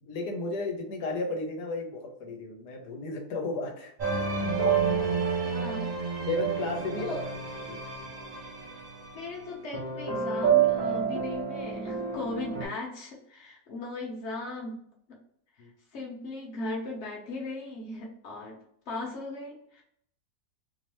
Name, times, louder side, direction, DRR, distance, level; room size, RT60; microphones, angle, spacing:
voice 1, 0.0-3.9 6.2-7.1 7.7-7.8 15.6-15.7, left 2 dB, 85° left, 2 dB, 1.3 m, -33 dB
sound 1, 4.0-9.2 9.7-12.7, right 6 dB, 45° right, 0.5 m, -29 dB
voice 2, 5.4-5.9 7.0-7.2 9.1-14.8 15.9-18.6 18.9-19.8, left 2 dB, 50° left, -1 dB, 1.0 m, -37 dB
3.0 x 2.0 x 2.9 m, 0.68 s
omnidirectional pair, 1.7 m